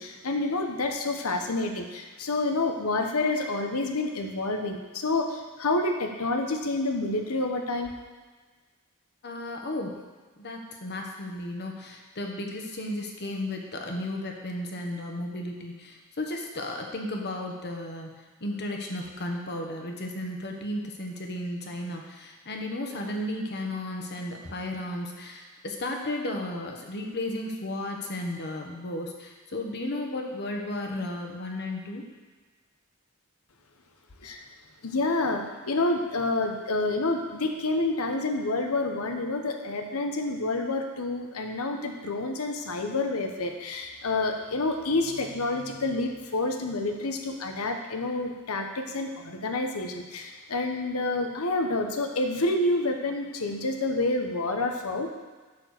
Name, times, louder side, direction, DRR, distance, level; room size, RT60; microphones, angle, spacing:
voice 1, 0.0-7.9 34.2-34.4 34.8-55.1, left 2 dB, 70° left, 4 dB, 1.0 m, -28 dB
voice 2, 9.2-10.0 10.4-32.1, left 1 dB, 50° left, 2 dB, 1.3 m, -34 dB
10.5 x 4.5 x 6.6 m, 1.4 s
head